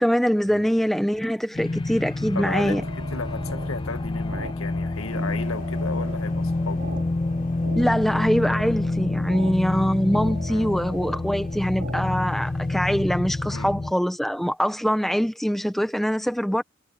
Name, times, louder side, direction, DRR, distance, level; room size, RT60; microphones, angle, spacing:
voice 1, 0.0-2.8 7.7-16.6, equal, ahead, 0.8 m, -23 dB
sound 1, 1.5-13.9, left 2 dB, 20° left, 0.3 m, -28 dB
sound 2, 2.2-12.0, right 2 dB, 50° right, 2.9 m, -40 dB
voice 2, 2.3-6.9 10.5-10.8 13.5-13.7, left 3 dB, 80° left, 1.9 m, -34 dB
sound 3, 4.9-12.9, left 3 dB, 40° left, 6.6 m, -57 dB
head